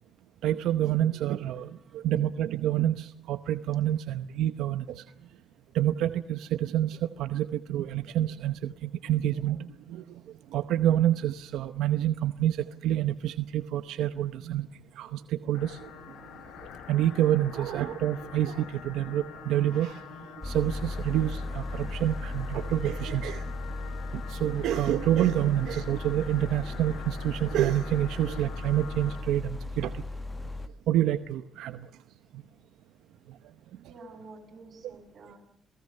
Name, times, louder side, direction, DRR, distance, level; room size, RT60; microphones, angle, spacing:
voice 1, 0.4-5.0 5.7-10.0 10.5-14.7 15.0-15.9 16.9-20.0 20.4-23.5 24.3-30.0 30.9-31.8 32.3-32.4, right 12 dB, 85° right, 11 dB, 0.8 m, -28 dB
sound 1, 15.5-29.3, left 7 dB, 85° left, 3.8 m, -45 dB
sound 2, 20.4-30.7, left 2 dB, 20° left, 1.0 m, -37 dB
voice 2, 33.9-35.4, right 2 dB, 45° right, 4 dB, 7.6 m, -49 dB
27.5 x 19.0 x 6.7 m, 0.71 s
cardioid pair, 90°, 0 cm